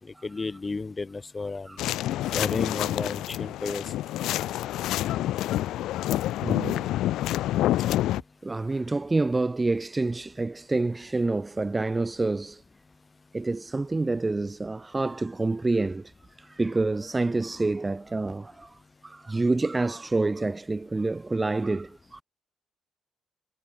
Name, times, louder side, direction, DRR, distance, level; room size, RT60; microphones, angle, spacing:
voice 1, 0.2-1.7 2.3-3.8, left 3 dB, 25° left, 1.7 m, -32 dB
voice 2, 1.7-2.4 4.7-5.2 5.5-5.7 6.4-6.9 7.8-7.9 8.4-12.6 13.3-16.1 16.4-22.2, right 3 dB, 20° right, 0.3 m, -28 dB
Walking on a windy day at Camber Sands, 1.8-8.2, left 14 dB, 85° left, 0.8 m, -27 dB
cardioid pair, 90°, 0 cm